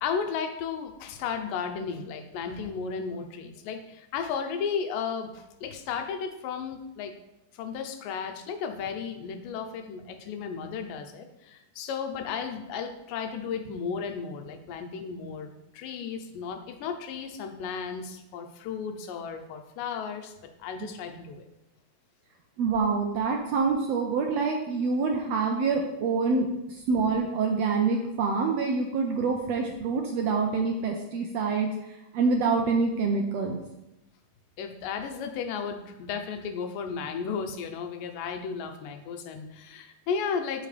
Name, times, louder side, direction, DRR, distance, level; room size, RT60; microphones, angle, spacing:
voice 1, 0.0-7.1 7.5-20.3 20.6-21.5 34.6-40.7, left 6 dB, 85° left, 6 dB, 2.5 m, -34 dB
voice 2, 22.6-31.7 32.1-33.6, right 4 dB, 80° right, 2 dB, 1.5 m, -26 dB
13.0 x 5.2 x 3.3 m, 0.91 s
omnidirectional pair, 3.8 m